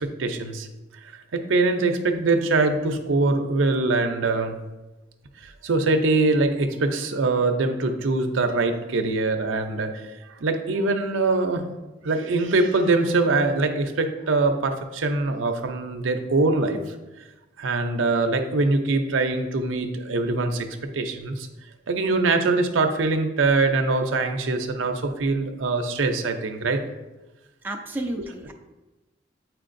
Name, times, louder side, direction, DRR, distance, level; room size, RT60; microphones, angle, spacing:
voice 1, 0.0-0.7 1.3-4.5 5.4-10.0 10.4-11.7 12.0-16.8 17.6-20.7 20.9-21.5 21.9-26.8 28.2-28.3, right 3 dB, 90° right, 5 dB, 0.6 m, -23 dB
voice 2, 27.6-28.5, right 1 dB, 10° right, 1 dB, 0.5 m, -31 dB
8.2 x 4.6 x 2.6 m, 1.1 s
head